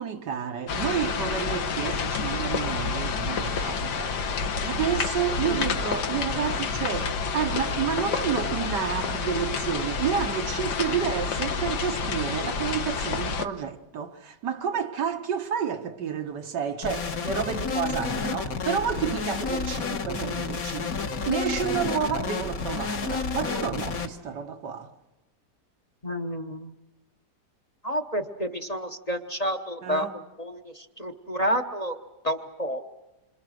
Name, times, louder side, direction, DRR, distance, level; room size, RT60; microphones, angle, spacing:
voice 1, 0.0-24.9 29.8-30.2, right 8 dB, 85° right, 1.9 m, -30 dB
sound 1, 0.7-13.5, left 5 dB, 75° left, 1.7 m, -29 dB
sound 2, 16.8-24.1, left 5 dB, 60° left, 1.7 m, -30 dB
voice 2, 26.0-26.7 27.8-30.1 30.4-32.0 32.2-32.8, equal, 30° left, 0.9 m, -30 dB
27.5 x 26.0 x 6.3 m
omnidirectional pair, 1.8 m